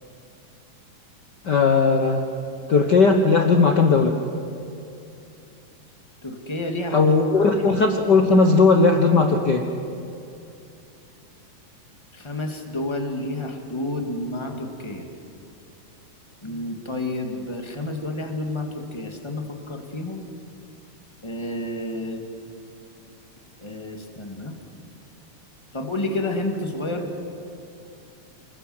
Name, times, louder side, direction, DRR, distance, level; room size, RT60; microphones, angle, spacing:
voice 1, 1.4-2.3 2.7-4.2 6.9-9.6, left 4 dB, 75° left, 4 dB, 0.9 m, -17 dB
voice 2, 6.2-7.5 12.1-15.0 16.4-20.3 21.2-22.2 23.6-24.6 25.7-27.1, left 1 dB, 10° left, 3 dB, 1.6 m, -30 dB
28.5 x 20.5 x 8.0 m, 2.6 s
omnidirectional pair, 3.8 m